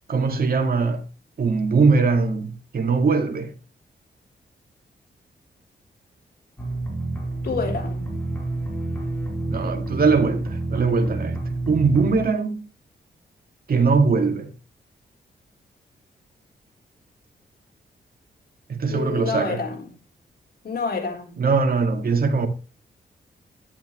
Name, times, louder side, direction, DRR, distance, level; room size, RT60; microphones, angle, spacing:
voice 1, 0.1-1.0 1.4-3.5 9.5-12.6 13.7-14.5 18.7-19.6 21.4-22.5, right 4 dB, 60° right, 2.2 m, -21 dB
sound 1, 6.6-12.3, right 2 dB, 10° left, 4.6 m, -29 dB
voice 2, 7.4-8.1 18.9-19.9 20.6-21.4, left 5 dB, 65° left, 3.9 m, -28 dB
11.5 x 11.0 x 3.2 m
cardioid pair, 80°, 17 cm